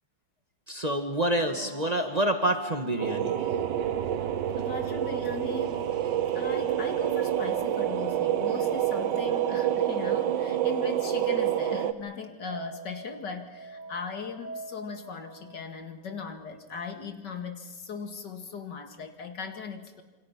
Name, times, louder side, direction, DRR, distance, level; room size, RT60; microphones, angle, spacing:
voice 1, 0.7-3.5, right 1 dB, 25° right, 5 dB, 1.6 m, -27 dB
sound 1, 1.2-16.9, right 2 dB, 45° right, 2.8 m, -47 dB
sound 2, 3.0-11.9, right 10 dB, 85° right, 1.7 m, -28 dB
voice 2, 4.6-6.0 6.3-20.0, left 5 dB, 75° left, 5 dB, 2.7 m, -38 dB
28.0 x 25.5 x 6.0 m, 1.2 s
omnidirectional pair, 1.9 m